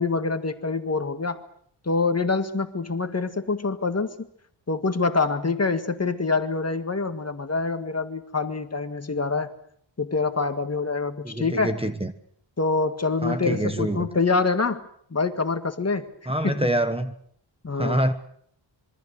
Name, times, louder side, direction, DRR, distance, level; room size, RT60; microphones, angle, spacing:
voice 1, 0.0-1.4 1.9-4.1 4.7-9.5 10.0-11.8 12.6-16.1 16.4-16.7 17.6-18.0, left 4 dB, 30° left, 1.8 m, -25 dB
voice 2, 11.2-12.1 13.2-14.1 16.3-17.1 17.8-18.1, right 1 dB, 10° right, 1.3 m, -25 dB
26.0 x 23.5 x 6.6 m
wide cardioid pair, 145°, 47 cm